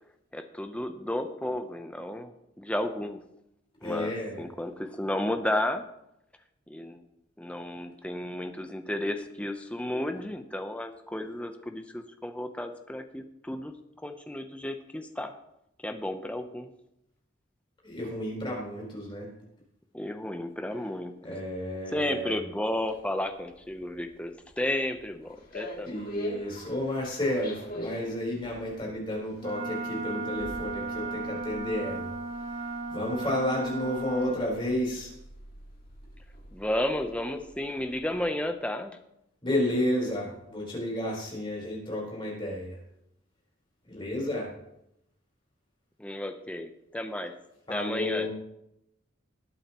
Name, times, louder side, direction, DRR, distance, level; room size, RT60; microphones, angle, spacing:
voice 1, 0.3-3.2 3.8-5.9 6.7-7.0 7.4-13.7 14.0-15.3 15.8-16.7 19.9-21.1 21.9-25.9 36.5-39.0 46.0-47.3 47.7-48.3, left 1 dB, 5° left, 6 dB, 0.7 m, -33 dB
voice 2, 3.8-4.5 17.8-19.3 21.2-22.3 25.9-35.1 39.4-42.8 43.8-44.5 47.7-48.3, left 1 dB, 25° left, -3 dB, 4.1 m, -32 dB
sound 1, 22.8-38.3, left 1 dB, 45° left, 2.2 m, -44 dB
Wind instrument woodwind instrument, 29.4-34.3, right 3 dB, 40° right, 4.2 m, -35 dB
19.0 x 8.7 x 3.0 m, 0.82 s
head